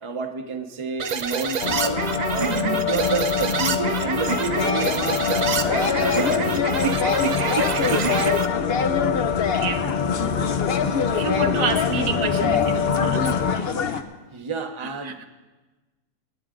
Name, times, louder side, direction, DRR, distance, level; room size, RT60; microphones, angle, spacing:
voice 1, 0.0-8.0 14.3-15.2, right 4 dB, 25° right, 5 dB, 0.9 m, -31 dB
sound 1, 1.0-8.5, right 6 dB, 55° right, 0.4 m, -27 dB
sound 2, 1.6-13.6, left 7 dB, 90° left, 0.3 m, -25 dB
voice 2, 2.5-2.9 9.5-9.9 10.9-13.7 14.8-15.3, right 5 dB, 75° right, 6 dB, 1.3 m, -30 dB
sound 3, 4.5-14.0, left 5 dB, 50° left, 0.9 m, -26 dB
26.0 x 9.5 x 3.8 m, 1.2 s
omnidirectional pair, 1.5 m